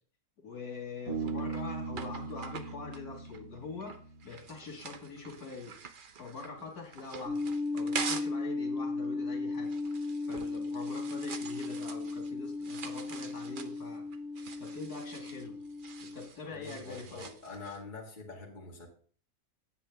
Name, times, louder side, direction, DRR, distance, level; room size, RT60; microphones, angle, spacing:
voice 1, 0.4-4.0 4.2-5.7 6.1-7.4 7.7-14.0 14.4-15.6 16.0-17.3, left 4 dB, 75° left, 1 dB, 2.4 m, -44 dB
sound 1, 0.7-8.4 8.8-17.8, right 6 dB, 45° right, 0.7 m, -45 dB
Bass guitar, 1.1-4.6, right 4 dB, 80° right, 3.2 m, -39 dB
sound 2, 7.2-16.3, left 3 dB, 60° right, 3.2 m, -36 dB
voice 2, 16.5-18.9, left 3 dB, 30° left, -3 dB, 2.1 m, -45 dB
9.9 x 8.3 x 3.4 m, 0.43 s
omnidirectional pair, 1.6 m